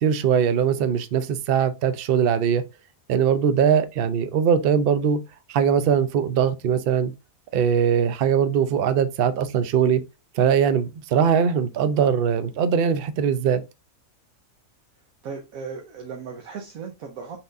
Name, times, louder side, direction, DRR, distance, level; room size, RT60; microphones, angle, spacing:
voice 1, 0.0-2.6 3.1-5.2 5.5-7.1 7.5-10.0 10.4-13.6, right 7 dB, 60° right, 0.6 m, -21 dB
voice 2, 15.2-17.4, right 5 dB, 80° right, 1.3 m, -36 dB
5.9 x 3.6 x 2.5 m
omnidirectional pair, 1.5 m